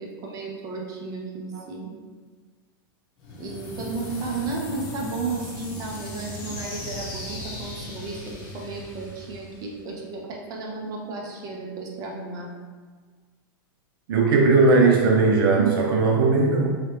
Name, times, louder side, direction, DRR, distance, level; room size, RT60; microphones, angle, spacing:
voice 1, 0.0-1.9 3.4-12.5, right 3 dB, 30° right, -1 dB, 0.7 m, -33 dB
sound 1, 3.2-10.1, left 2 dB, 40° left, 1.1 m, -37 dB
voice 2, 14.1-16.8, right 3 dB, 70° right, 1 dB, 0.5 m, -18 dB
3.2 x 2.9 x 3.2 m, 1.5 s
hypercardioid pair, 130°, 12 cm